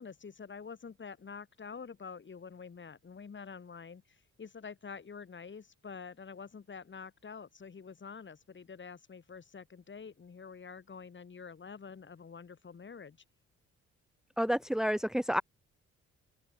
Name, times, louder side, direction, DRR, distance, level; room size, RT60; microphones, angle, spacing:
voice 1, 0.0-13.2, left 5 dB, 40° left, 7.1 m, -47 dB
voice 2, 14.4-15.4, equal, ahead, 1.8 m, -29 dB
open air
cardioid pair, 90°, 30 cm